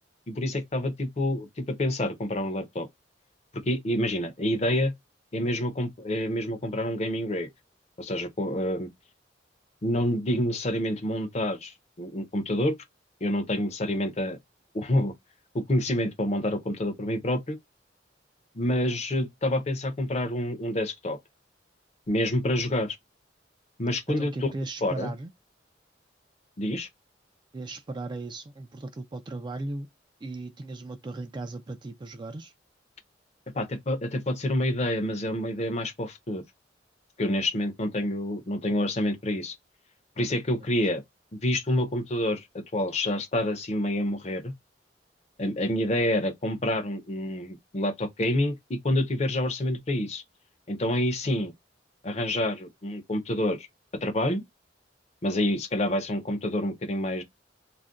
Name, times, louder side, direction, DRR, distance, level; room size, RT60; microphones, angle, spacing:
voice 1, 0.3-2.9 3.7-4.9 5.3-7.5 8.0-8.9 9.8-12.8 13.2-14.4 14.7-15.1 15.5-17.6 18.5-21.2 22.1-23.0 23.8-24.5 24.8-25.1 26.6-26.9 33.5-36.4 37.2-39.6 40.2-41.0 41.3-44.5 45.4-50.2 50.7-51.5 52.0-53.7 54.0-54.4 55.2-57.2, left 1 dB, 35° left, 0.6 m, -28 dB
voice 2, 24.2-25.3 27.5-29.9 30.2-32.5, right 2 dB, 25° right, 0.3 m, -37 dB
2.4 x 2.1 x 3.6 m
head